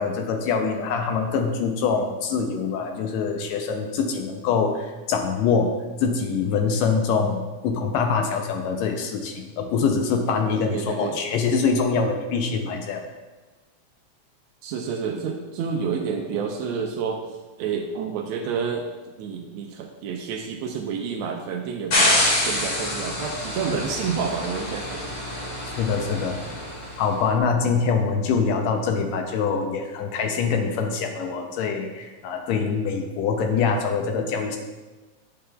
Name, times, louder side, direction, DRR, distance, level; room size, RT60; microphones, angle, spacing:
voice 1, 0.0-5.7 6.0-13.0 25.8-26.4 27.0-34.6, left 5 dB, 75° left, 4 dB, 1.8 m, -24 dB
voice 2, 10.7-11.2 14.6-18.9 19.2-22.2 22.4-25.0, right 6 dB, 80° right, 3 dB, 1.6 m, -29 dB
sound 1, 21.9-27.0, left 1 dB, 50° left, 2.2 m, -26 dB
8.6 x 6.7 x 2.3 m, 1.2 s
omnidirectional pair, 3.3 m